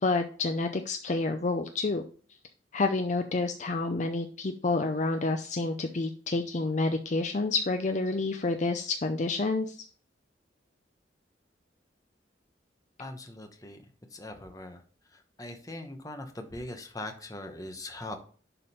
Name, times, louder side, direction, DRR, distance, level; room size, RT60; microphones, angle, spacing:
voice 1, 0.0-2.0 2.7-9.8, left 3 dB, 40° left, 6 dB, 0.5 m, -29 dB
voice 2, 13.0-13.8 14.1-14.8 15.4-18.2, left 1 dB, 20° left, 5 dB, 1.0 m, -40 dB
11.0 x 3.7 x 4.2 m, 0.43 s
head